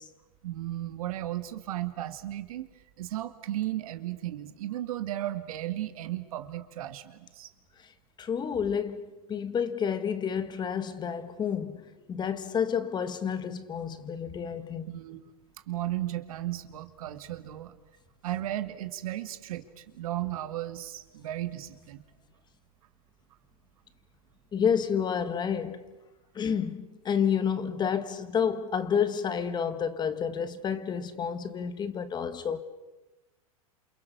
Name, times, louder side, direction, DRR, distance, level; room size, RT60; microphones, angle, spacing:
voice 1, 0.4-2.7 3.0-7.5 14.9-15.3 15.7-17.8 18.2-22.0, right 14 dB, 70° right, 2.3 m, -35 dB
voice 2, 8.2-14.9 24.5-25.8 26.3-32.6, left 7 dB, 25° left, 1.5 m, -30 dB
28.5 x 28.0 x 6.8 m
hypercardioid pair, 120°, 19 cm